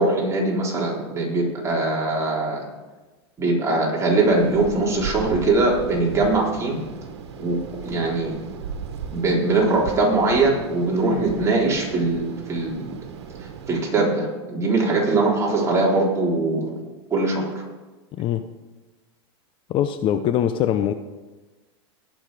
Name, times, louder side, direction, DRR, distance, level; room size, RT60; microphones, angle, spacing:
voice 1, 0.0-2.6 3.4-6.8 7.4-8.4 9.1-12.7 13.7-16.7 17.1-17.6, right 2 dB, 20° right, -3 dB, 3.8 m, -21 dB
sound 1, 4.2-13.8, right 7 dB, 80° right, 1.6 m, -37 dB
voice 2, 19.7-20.9, left 10 dB, 40° left, 10 dB, 0.6 m, -22 dB
18.0 x 6.4 x 4.9 m, 1.2 s
supercardioid pair, 125°, 14 cm